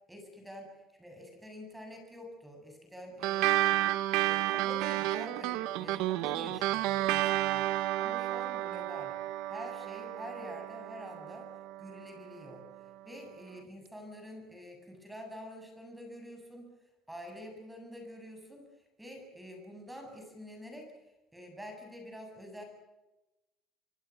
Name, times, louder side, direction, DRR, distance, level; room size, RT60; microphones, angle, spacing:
voice 1, 0.1-0.7 1.0-9.2 9.5-11.5 11.8-12.6 13.0-16.7 17.1-18.6 19.0-20.9 21.3-22.6, equal, 5° right, 3 dB, 7.6 m, -47 dB
sound 1, 3.2-12.0, right 15 dB, 80° right, 1.1 m, -31 dB
25.0 x 25.0 x 6.2 m, 1.0 s
cardioid pair, 145°, 0 cm